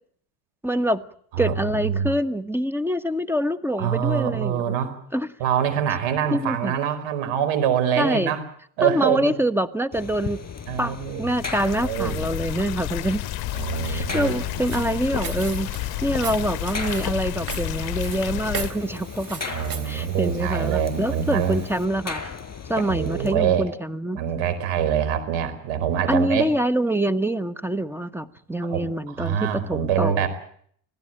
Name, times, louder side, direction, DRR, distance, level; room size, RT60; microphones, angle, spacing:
voice 1, 0.6-1.0 1.4-4.7 5.1-5.3 6.3-6.7 8.0-8.3 8.8-10.4 10.8-13.2 13.8-15.7 16.0-19.6 19.8-22.2 22.7-24.2 26.1-30.3, right 1 dB, 5° right, 14 dB, 1.3 m, -25 dB
voice 2, 1.3-2.1 3.8-5.0 5.4-8.4 8.8-9.3 10.7-11.3 11.8-12.2 13.5-14.9 15.2-15.4 19.5-21.6 22.8-23.7 24.1-26.5 28.7-28.8 29.2-30.3, right 9 dB, 75° right, 11 dB, 4.9 m, -25 dB
sound 1, 9.9-23.3, left 5 dB, 35° left, 5.5 m, -37 dB
sound 2, 11.3-18.7, left 19 dB, 55° left, 0.9 m, -31 dB
Walk footsteps, 13.5-21.9, right 6 dB, 45° right, 3.7 m, -39 dB
25.5 x 16.5 x 9.0 m, 0.63 s
supercardioid pair, 85°, 47 cm